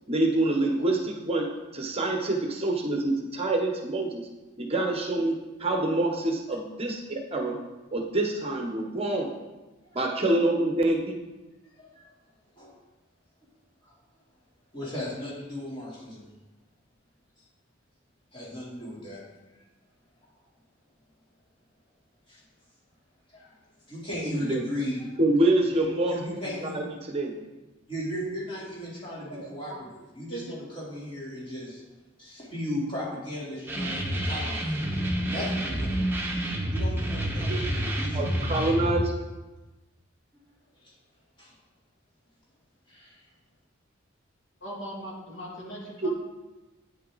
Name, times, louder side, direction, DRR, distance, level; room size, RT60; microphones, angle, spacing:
voice 1, 0.1-1.5 1.7-4.2 4.6-5.3 5.6-7.6 7.9-9.3 9.9-11.1 24.4-24.6 25.2-26.2 26.6-27.3 37.5-37.6 38.1-39.1 46.0-46.1, right 2 dB, 30° right, 2 dB, 0.9 m, -26 dB
voice 2, 11.8-12.1 12.6-12.7 13.8-13.9 14.7-16.3 18.3-19.2 22.3-22.4 23.3-23.5 23.9-25.1 26.1-26.8 27.9-31.8 32.2-34.9 35.3-36.0 36.7-38.2 40.8-40.9 41.4-41.5 42.9-43.2, left 1 dB, 25° left, -8 dB, 3.5 m, -36 dB
voice 3, 29.2-29.8 30.3-30.5 44.6-46.1, right 1 dB, 70° left, -4 dB, 2.6 m, -39 dB
sound 1, 33.7-38.9, right 1 dB, 10° right, 1.2 m, -28 dB
9.0 x 7.7 x 4.0 m, 1.1 s
head